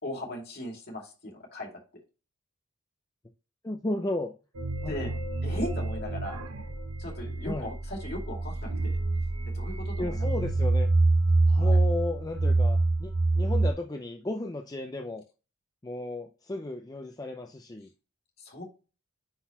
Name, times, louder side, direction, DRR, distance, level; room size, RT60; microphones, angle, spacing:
voice 1, 0.0-2.0 4.9-5.2 5.4-6.4 7.0-9.0 9.5-10.3 11.5-11.8 18.4-18.6, left 1 dB, 45° left, 2.4 m, -38 dB
voice 2, 3.6-4.4 4.8-4.9 7.5-7.7 10.0-10.9 11.6-15.2 15.8-17.9, left 2 dB, 15° left, 0.4 m, -34 dB
sound 1, 4.6-13.7, right 2 dB, 80° right, 0.8 m, -26 dB
9.8 x 3.9 x 2.9 m
head